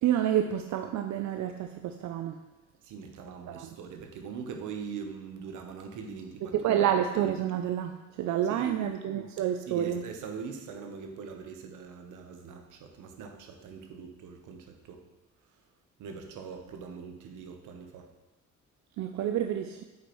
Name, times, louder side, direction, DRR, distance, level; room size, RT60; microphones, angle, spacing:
voice 1, 0.0-2.4 3.5-3.7 6.5-10.0 19.0-19.8, right 10 dB, 70° right, 6 dB, 0.5 m, -29 dB
voice 2, 2.8-6.8 8.5-8.9 9.7-15.0 16.0-18.1, right 6 dB, 85° right, 4 dB, 1.0 m, -42 dB
8.1 x 5.1 x 3.1 m, 1.0 s
cardioid pair, 90°, 30 cm